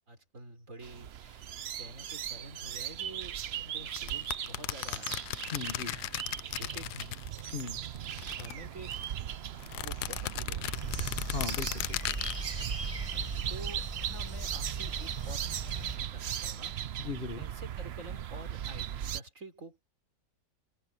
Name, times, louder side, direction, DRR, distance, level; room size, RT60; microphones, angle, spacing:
voice 1, 0.1-1.4 1.8-5.3 6.4-7.2 8.0-9.0 9.8-10.8 13.1-15.5 15.8-16.7 17.4-19.8, right 2 dB, 45° right, 4.7 m, -48 dB
sound 1, 0.8-19.2, right 10 dB, 75° right, 0.5 m, -38 dB
sound 2, 3.9-7.7 8.0-9.1 9.6-12.4, left 15 dB, 75° left, 1.1 m, -37 dB
voice 2, 5.5-6.0 7.5-7.8 11.3-12.2 17.0-17.5, left 4 dB, 35° left, 1.6 m, -38 dB
sound 3, 10.7-16.0, right 2 dB, 20° right, 1.2 m, -39 dB
omnidirectional pair, 1.9 m